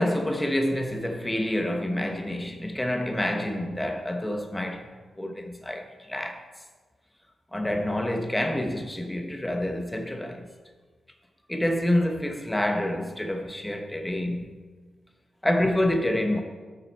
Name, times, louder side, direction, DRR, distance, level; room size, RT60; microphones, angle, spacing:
voice 1, 0.0-4.9 5.2-6.4 7.5-10.5 11.5-14.5 15.4-16.4, left 1 dB, 10° left, 0.9 m, -27 dB
7.8 x 5.9 x 4.4 m
cardioid pair, 55°, 0 cm